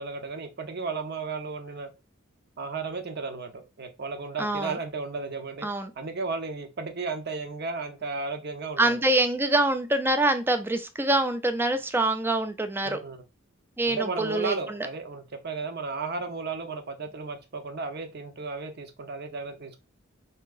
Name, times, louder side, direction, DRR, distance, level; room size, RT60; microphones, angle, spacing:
voice 1, 0.0-1.9 2.6-5.7 6.0-9.0 12.8-13.2 13.9-19.8, right 4 dB, 50° right, 0.7 m, -34 dB
voice 2, 4.4-4.8 5.6-5.9 8.8-13.0 13.8-14.9, right 2 dB, 10° right, 0.4 m, -25 dB
4.5 x 2.8 x 2.4 m
head